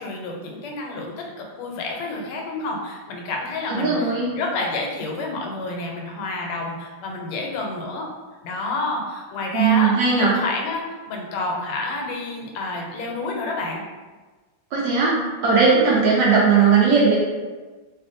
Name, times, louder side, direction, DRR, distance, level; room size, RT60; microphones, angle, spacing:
voice 1, 0.0-8.1 8.4-13.8, left 2 dB, 85° left, 0 dB, 1.5 m, -29 dB
voice 2, 3.7-4.3 9.5-10.3 14.7-15.2 15.4-17.2, right 5 dB, 75° right, -5 dB, 1.1 m, -17 dB
3.3 x 2.5 x 2.5 m, 1.3 s
omnidirectional pair, 2.3 m